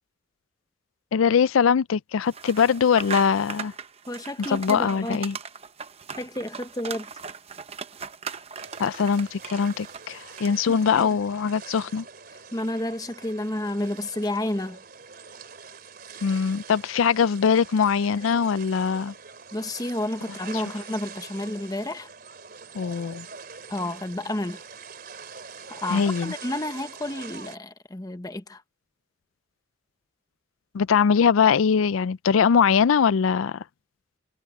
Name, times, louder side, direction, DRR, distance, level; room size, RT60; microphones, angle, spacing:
voice 1, 1.1-3.7 4.5-5.4 8.8-12.0 16.2-19.1 22.7-23.3 25.9-26.3 30.7-33.6, left 6 dB, 85° left, 0.4 m, -22 dB
sound 1, 2.3-10.8, right 6 dB, 30° right, 0.8 m, -39 dB
voice 2, 4.1-5.2 6.1-7.1 10.7-11.1 12.5-14.8 19.5-22.1 23.7-24.6 25.7-28.6, left 1 dB, 20° left, 0.9 m, -31 dB
sound 2, 8.6-27.6, right 5 dB, 50° right, 3.6 m, -44 dB
head